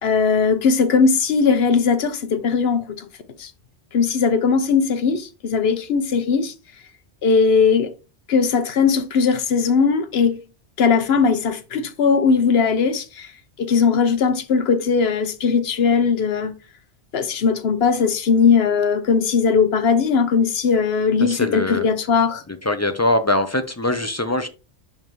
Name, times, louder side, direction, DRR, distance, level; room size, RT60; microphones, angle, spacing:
voice 1, 0.0-3.1 3.4-3.5 3.9-6.5 7.2-7.9 8.3-10.4 10.8-13.3 13.6-16.5 17.1-22.4, left 5 dB, 65° left, 1.0 m, -19 dB
voice 2, 21.2-21.9 22.5-24.5, left 1 dB, 25° left, 0.4 m, -22 dB
10.5 x 3.6 x 3.1 m
omnidirectional pair, 1.1 m